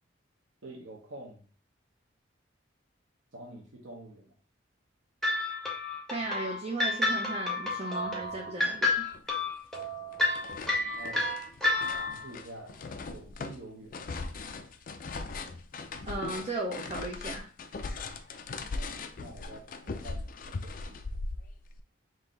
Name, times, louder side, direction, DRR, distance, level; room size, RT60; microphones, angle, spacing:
voice 1, 0.6-1.4 3.3-4.3 10.8-11.4 11.9-12.7 13.1-14.0 18.7-21.0, right 1 dB, 70° right, -1 dB, 0.9 m, -47 dB
sound 1, 5.2-12.3, left 2 dB, ahead, 0.8 m, -30 dB
voice 2, 6.1-9.1 16.1-17.5, right 2 dB, 35° right, -3 dB, 0.7 m, -35 dB
sound 2, 8.7-8.8 9.1-9.9 10.1-21.8, left 3 dB, 45° left, 0.4 m, -39 dB
3.9 x 2.7 x 3.8 m, 0.41 s
head